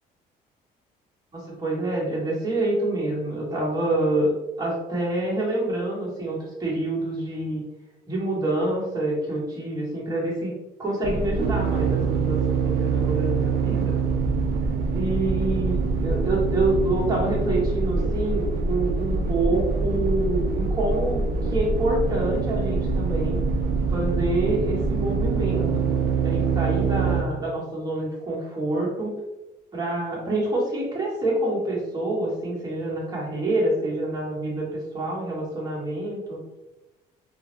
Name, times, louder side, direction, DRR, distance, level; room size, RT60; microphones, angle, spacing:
voice 1, 1.3-4.3 4.6-7.6 8.1-10.5 10.8-13.9 14.9-23.4 23.9-25.9 26.2-29.2 29.7-36.4, right 2 dB, 25° right, -5 dB, 1.1 m, -27 dB
sound 1, 11.0-27.2, right 4 dB, 70° right, 0.4 m, -24 dB
2.2 x 2.0 x 3.0 m, 0.98 s
cardioid pair, 110°, 17 cm